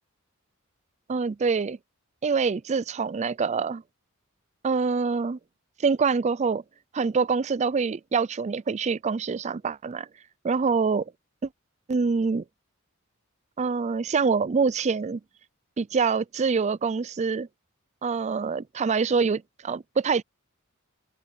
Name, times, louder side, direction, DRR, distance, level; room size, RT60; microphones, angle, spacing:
voice 1, 1.1-1.8 2.2-3.8 4.6-5.4 5.8-6.6 6.9-10.1 10.4-11.1 11.9-12.4 13.6-15.2 15.8-17.5 18.0-20.2, right 5 dB, 35° right, 0.4 m, -25 dB
open air
head